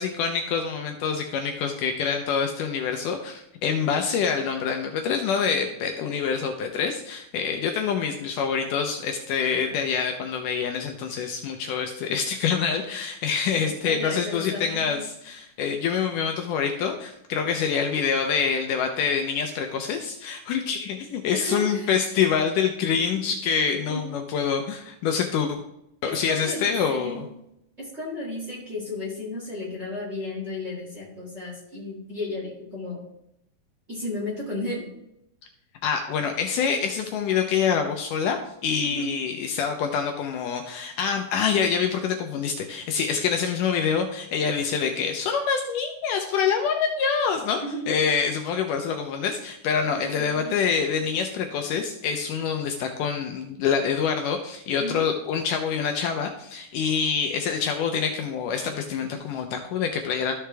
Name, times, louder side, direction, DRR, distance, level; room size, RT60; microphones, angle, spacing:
voice 1, 0.0-25.6 26.0-27.3 35.8-38.4 38.6-47.6 47.9-60.3, left 6 dB, 75° left, 4 dB, 2.1 m, -26 dB
voice 2, 13.6-15.0 21.3-21.9 23.1-23.2 23.7-24.0 26.0-27.3 27.8-33.0 33.9-34.9 38.8-39.1 47.6-47.9 49.9-50.6 54.8-55.0, left 2 dB, 25° right, -6 dB, 1.9 m, -34 dB
13.5 x 5.0 x 3.4 m, 0.80 s
omnidirectional pair, 4.1 m